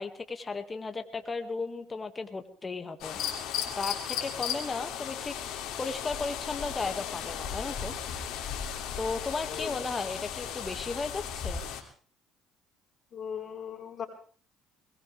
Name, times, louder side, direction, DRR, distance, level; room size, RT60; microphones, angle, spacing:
voice 1, 0.0-3.2 3.5-7.9 9.0-11.6, left 4 dB, 30° left, 7 dB, 2.1 m, -35 dB
sound 1, 3.0-11.8, left 8 dB, 70° left, 2.8 m, -36 dB
voice 2, 9.5-9.8 13.1-14.1, left 8 dB, 45° left, 2 dB, 3.9 m, -38 dB
22.0 x 19.0 x 3.5 m, 0.42 s
hypercardioid pair, 60°, 0 cm